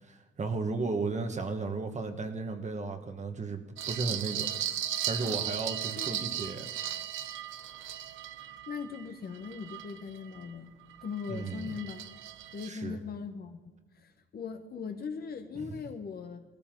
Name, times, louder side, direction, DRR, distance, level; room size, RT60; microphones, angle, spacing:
voice 1, 0.1-3.6 3.9-4.5 5.1-6.7 11.3-11.7 12.7-13.0 15.5-15.7, right 3 dB, 35° right, 6 dB, 1.5 m, -34 dB
sound 1, 3.8-10.5 10.9-12.7, right 11 dB, 80° right, 0.7 m, -37 dB
voice 2, 8.7-10.7 11.0-12.0 12.5-16.4, left 6 dB, 50° left, 7 dB, 1.2 m, -40 dB
19.0 x 14.0 x 3.8 m, 1.2 s
cardioid pair, 90°, 20 cm